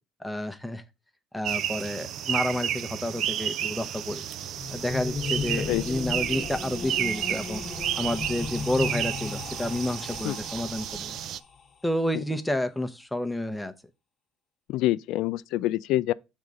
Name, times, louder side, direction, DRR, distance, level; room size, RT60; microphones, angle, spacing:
voice 1, 0.2-0.8 1.3-4.3 4.7-7.6 8.0-11.2 11.8-13.7, left 1 dB, 5° left, 0.7 m, -30 dB
sound 1, 1.4-11.4, right 10 dB, 55° right, 0.4 m, -32 dB
sound 2, 4.4-11.4, left 5 dB, 30° left, 1.0 m, -35 dB
voice 2, 14.7-16.1, left 15 dB, 65° left, 0.3 m, -26 dB
6.4 x 3.6 x 5.2 m
cardioid pair, 130°, 0 cm